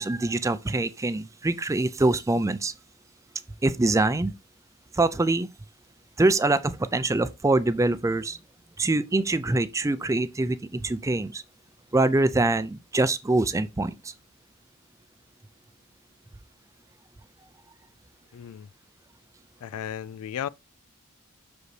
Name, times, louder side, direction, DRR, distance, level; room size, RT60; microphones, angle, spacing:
voice 1, 0.0-2.7 3.6-4.3 4.9-5.5 6.2-8.4 8.8-11.4 11.9-14.1, right 2 dB, 15° right, 0.3 m, -24 dB
voice 2, 18.3-18.7 19.6-20.5, left 9 dB, 75° left, 0.3 m, -34 dB
6.4 x 5.0 x 3.2 m
head